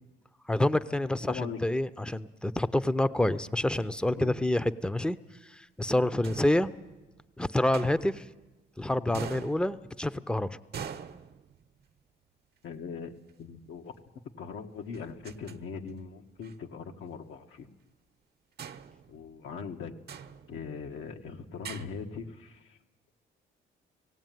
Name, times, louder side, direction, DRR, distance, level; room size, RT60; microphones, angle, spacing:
voice 1, 0.5-5.2 5.5-6.7 7.4-8.3 8.8-10.6, left 1 dB, 5° left, 14 dB, 0.7 m, -28 dB
voice 2, 1.3-1.6 4.1-4.6 12.6-13.1 13.4-13.9 14.4-17.7 19.1-19.9 20.5-22.8, left 5 dB, 80° left, 3 dB, 1.8 m, -40 dB
sound 1, 3.7-4.6 6.2-7.2 7.7-8.6 9.1-10.2 10.7-12.0 13.3-13.4 14.9-15.6 15.9-16.0 16.4-16.5 18.6-19.7 20.1-20.9 21.6-21.9, right 7 dB, 55° right, 1.0 m, -44 dB
17.5 x 17.5 x 9.3 m, 1.1 s
cardioid pair, 90°, 20 cm